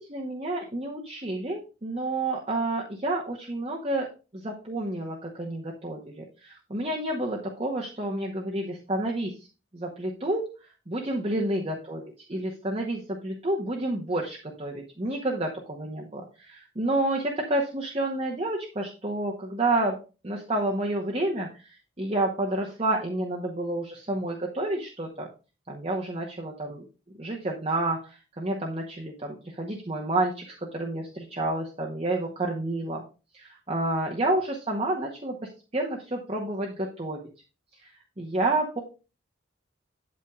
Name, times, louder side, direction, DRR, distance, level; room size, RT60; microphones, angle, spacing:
voice 1, 0.0-4.1 4.3-9.5 9.7-10.5 10.9-12.0 12.3-20.0 20.2-25.3 25.7-26.8 27.2-33.0 33.3-37.2 37.7-38.8, right 2 dB, 30° right, -2 dB, 1.0 m, -30 dB
8.5 x 8.4 x 2.4 m, 0.33 s
head